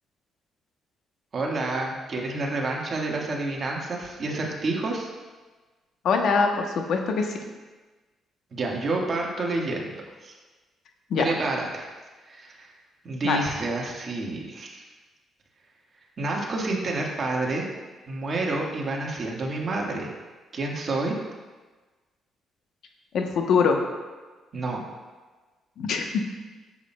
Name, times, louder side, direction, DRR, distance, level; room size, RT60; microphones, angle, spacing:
voice 1, 1.3-5.1 8.5-9.9 10.2-10.3 11.2-11.9 12.3-12.7 13.0-14.8 16.2-17.6 18.1-20.1 20.5-21.2 24.5-24.8, right 2 dB, 45° right, -1 dB, 1.5 m, -29 dB
voice 2, 6.0-7.4 11.1-11.2 13.2-13.4 23.1-23.8 25.8-26.1, left 5 dB, 70° left, 4 dB, 0.9 m, -23 dB
10.0 x 7.4 x 2.2 m, 1.3 s
cardioid pair, 90°, 0 cm